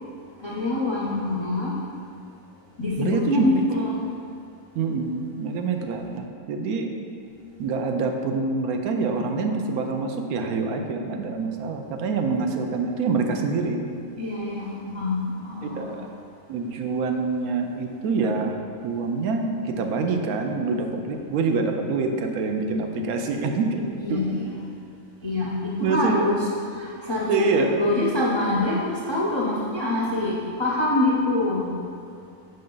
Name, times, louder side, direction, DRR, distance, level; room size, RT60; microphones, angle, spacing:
voice 1, 0.4-1.8 2.8-4.0 14.2-16.0 24.0-24.6 25.2-31.7, left 2 dB, 50° left, -5 dB, 0.3 m, -25 dB
voice 2, 3.0-3.6 4.7-6.9 7.6-13.8 15.6-16.1 16.5-23.8 24.1-24.2 25.8-26.3 27.3-27.9, right 4 dB, 90° right, 4 dB, 1.1 m, -26 dB
5.5 x 5.3 x 3.8 m, 2.4 s
omnidirectional pair, 1.5 m